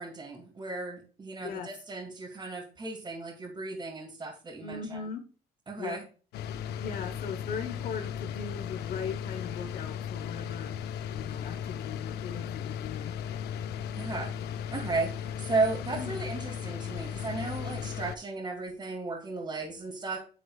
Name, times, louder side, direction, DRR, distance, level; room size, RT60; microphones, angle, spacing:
voice 1, 0.0-5.0 5.7-6.0 13.9-14.3 14.7-20.2, right 3 dB, 25° right, -4 dB, 2.6 m, -34 dB
voice 2, 4.6-5.2 5.8-6.0 6.8-10.8 11.1-13.1 15.9-16.1, left 6 dB, 60° left, 7 dB, 1.1 m, -39 dB
sound 1, 6.3-18.1, left 8 dB, 75° left, 0.7 m, -36 dB
8.6 x 7.8 x 2.4 m, 0.38 s
cardioid pair, 110°, 17 cm